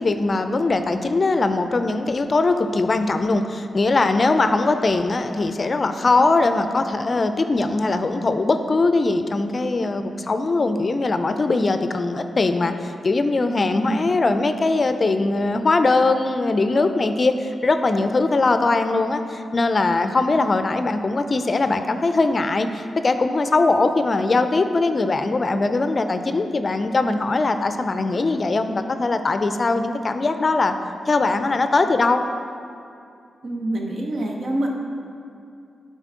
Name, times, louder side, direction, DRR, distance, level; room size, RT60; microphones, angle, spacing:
voice 1, 0.0-30.7 31.1-32.2, left 3 dB, 50° left, 8 dB, 0.4 m, -21 dB
voice 2, 33.4-34.7, right 1 dB, 65° right, 0 dB, 1.0 m, -26 dB
8.9 x 3.9 x 3.7 m, 2.4 s
supercardioid pair, 45°, 0 cm